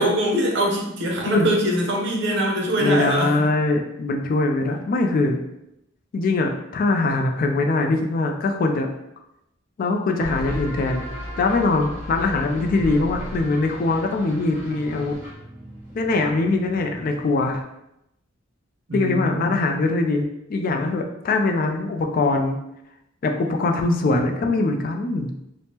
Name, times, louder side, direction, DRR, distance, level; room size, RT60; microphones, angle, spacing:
voice 1, 0.0-3.4 18.9-19.6, right 1 dB, 60° right, -1 dB, 0.7 m, -23 dB
voice 2, 2.4-5.4 6.1-8.9 9.8-11.1 11.4-15.2 15.9-17.6 18.9-22.6 23.2-25.3, left 3 dB, 45° left, 4 dB, 0.3 m, -22 dB
sound 1, 10.2-17.5, equal, 5° right, 1.4 m, -36 dB
3.4 x 2.0 x 2.7 m, 0.83 s
head